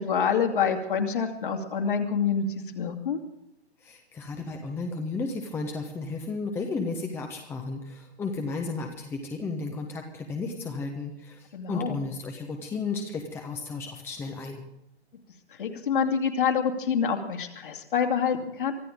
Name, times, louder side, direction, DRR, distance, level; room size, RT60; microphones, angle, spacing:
voice 1, 0.0-2.4 2.7-3.2 11.5-12.0 15.6-18.7, left 7 dB, 50° left, 4 dB, 2.7 m, -26 dB
voice 2, 3.8-14.6, left 3 dB, 5° left, 3 dB, 1.1 m, -33 dB
24.0 x 14.0 x 3.8 m, 0.82 s
figure-of-eight pair, 125°, 33 cm